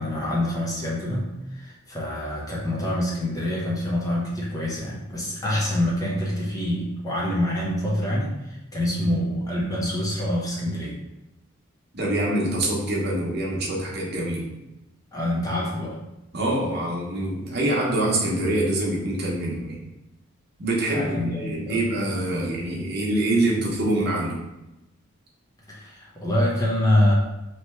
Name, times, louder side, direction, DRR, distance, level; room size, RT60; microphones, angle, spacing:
voice 1, 0.0-8.4 8.7-11.0 15.1-16.0 20.9-21.8 25.7-27.1, left 1 dB, 15° left, -5 dB, 0.7 m, -26 dB
voice 2, 11.9-14.5 16.3-19.8 20.6-24.4, right 1 dB, 50° right, -3 dB, 0.9 m, -25 dB
3.1 x 2.9 x 4.3 m, 0.94 s
head